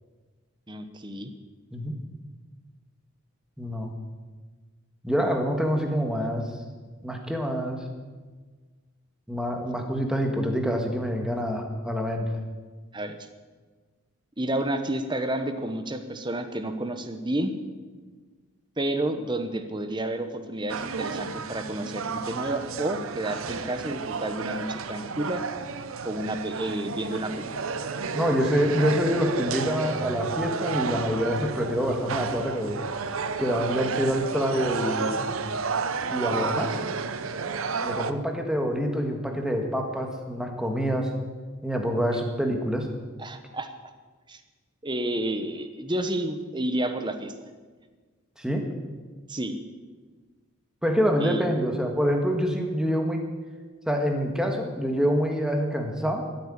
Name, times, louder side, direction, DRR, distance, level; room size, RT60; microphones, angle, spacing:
voice 1, 0.7-1.3 12.9-13.2 14.4-17.5 18.8-25.4 26.0-27.5 43.2-43.7 44.3-44.4 44.8-47.3 49.3-49.6 51.2-51.4, right 1 dB, 20° right, 8 dB, 1.0 m, -30 dB
voice 2, 3.6-3.9 5.0-6.5 7.0-7.8 9.3-12.3 28.1-32.8 33.4-35.3 36.1-36.8 37.8-41.1 41.6-42.9 48.4-48.6 50.8-53.2 53.9-56.2, equal, 5° right, 2 dB, 1.6 m, -26 dB
sound 1, 20.7-38.1, right 5 dB, 75° right, 0.7 m, -31 dB
14.0 x 8.8 x 8.7 m, 1.4 s
head